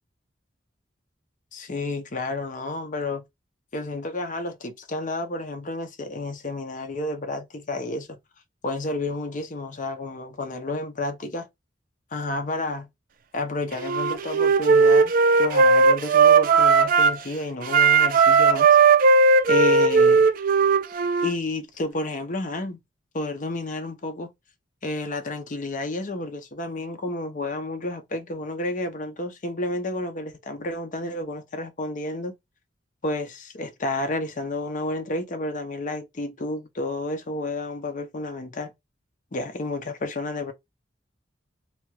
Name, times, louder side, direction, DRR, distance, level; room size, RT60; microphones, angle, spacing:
voice 1, 1.5-3.2 3.7-8.2 8.6-11.5 12.1-12.9 13.3-18.7 19.5-20.2 21.2-22.8 23.1-24.3 24.8-32.3 33.0-38.7 39.3-40.5, left 2 dB, 45° left, 0.6 m, -31 dB
Wind instrument woodwind instrument, 13.8-17.2 17.7-21.3, right 4 dB, 50° right, 0.3 m, -17 dB
3.0 x 2.3 x 3.0 m
head